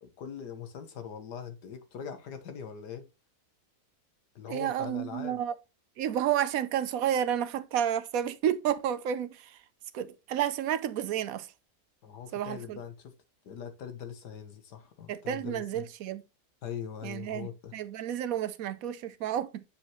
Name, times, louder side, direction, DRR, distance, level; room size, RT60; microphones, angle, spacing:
voice 1, 0.0-3.0 4.4-5.4 12.0-13.1 13.4-15.9 16.6-17.7, left 8 dB, 85° left, 1.8 m, -41 dB
voice 2, 4.5-5.5 6.0-9.6 9.9-11.5 12.3-12.8 15.1-16.2 17.0-19.6, right 10 dB, 70° right, 1.0 m, -31 dB
8.7 x 4.9 x 3.0 m
omnidirectional pair, 1.7 m